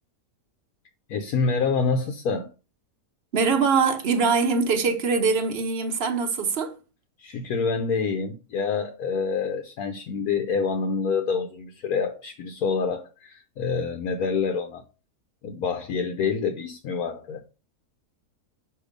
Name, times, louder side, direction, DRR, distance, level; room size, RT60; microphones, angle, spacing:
voice 1, 1.1-2.5 7.2-14.8 15.4-17.5, left 5 dB, 85° left, 1.3 m, -27 dB
voice 2, 3.3-6.8, right 5 dB, 50° right, 1.0 m, -23 dB
6.5 x 2.9 x 5.1 m
omnidirectional pair, 1.5 m